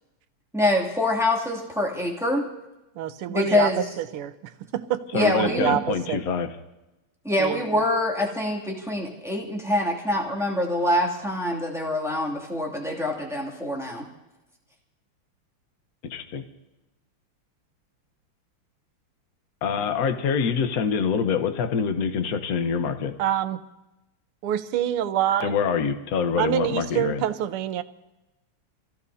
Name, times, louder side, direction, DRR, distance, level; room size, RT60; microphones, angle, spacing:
voice 1, 0.5-2.5 3.3-3.8 5.2-5.8 7.2-14.1, left 1 dB, ahead, -3 dB, 2.3 m, -25 dB
voice 2, 3.0-3.7 4.0-6.2 7.4-7.8 23.2-23.6 24.4-25.5 26.4-27.8, right 11 dB, 85° right, 11 dB, 1.7 m, -26 dB
voice 3, 5.1-6.5 16.1-16.4 19.6-23.1 25.4-27.2, left 6 dB, 50° left, 7 dB, 1.3 m, -25 dB
28.0 x 16.5 x 2.8 m, 1.0 s
omnidirectional pair, 2.4 m